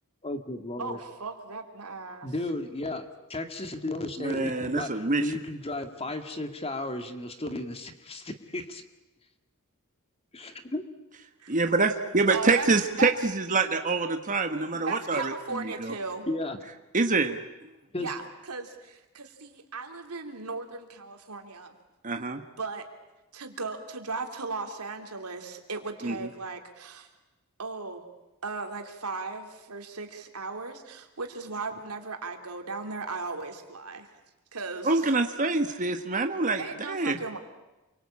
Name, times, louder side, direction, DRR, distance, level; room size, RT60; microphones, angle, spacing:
voice 1, 0.2-1.0 2.2-8.8 10.3-10.8 16.3-16.6 17.9-18.1, left 2 dB, 25° left, 7 dB, 2.0 m, -34 dB
voice 2, 0.8-2.3 12.3-13.1 14.9-16.3 18.0-21.7 22.6-22.9 23.3-27.1 27.6-28.0 28.4-34.2 34.5-35.1 36.6-37.4, right 4 dB, 90° right, 5 dB, 3.3 m, -37 dB
voice 3, 4.2-5.2 11.5-15.3 15.8-15.9 16.9-17.4 22.0-22.4 26.0-26.1 34.9-36.6 36.9-37.2, right 3 dB, 35° right, 6 dB, 1.4 m, -25 dB
28.5 x 24.0 x 8.7 m, 1.0 s
head